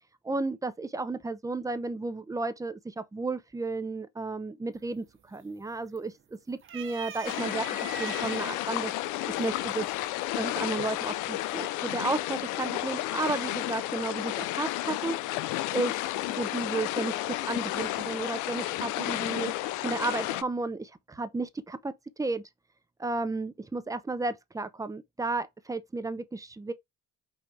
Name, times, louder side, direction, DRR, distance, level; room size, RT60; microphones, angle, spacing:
voice 1, 0.2-6.1 6.5-7.7 8.0-8.9 9.3-9.9 10.4-15.2 15.7-15.9 16.4-19.5 19.8-21.9 22.2-22.4 23.0-26.7, right 3 dB, 10° right, 0.7 m, -33 dB
sound 1, 4.8-5.2 5.5-6.2 6.6-8.5 9.4-9.5 10.7-11.2, right 6 dB, 45° right, 0.8 m, -42 dB
sound 2, 7.2-20.4, left 15 dB, 85° left, 0.5 m, -32 dB
5.2 x 2.9 x 3.4 m
cardioid pair, 90°, 29 cm